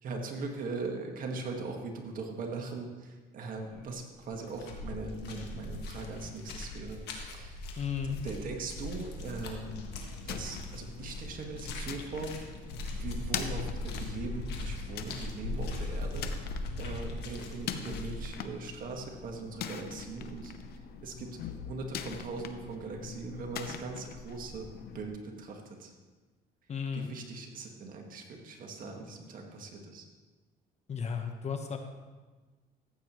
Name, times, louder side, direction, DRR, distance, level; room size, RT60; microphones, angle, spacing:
voice 1, 0.0-7.0 7.3-7.7 8.0-9.8 10.3-12.4 12.9-20.5 21.0-21.3 21.6-24.7 24.9-25.9 26.9-30.1, right 3 dB, 55° right, 2 dB, 1.7 m, -40 dB
sound 1, 3.7-3.9 4.2-18.3, left 2 dB, 80° left, 1.6 m, -40 dB
voice 2, 7.8-8.2 26.7-27.1 30.9-31.8, left 7 dB, 40° left, 5 dB, 1.1 m, -34 dB
sound 2, 9.8-25.1, left 7 dB, 65° left, 0.7 m, -43 dB
14.5 x 8.4 x 3.1 m, 1.3 s
cardioid pair, 110°, 17 cm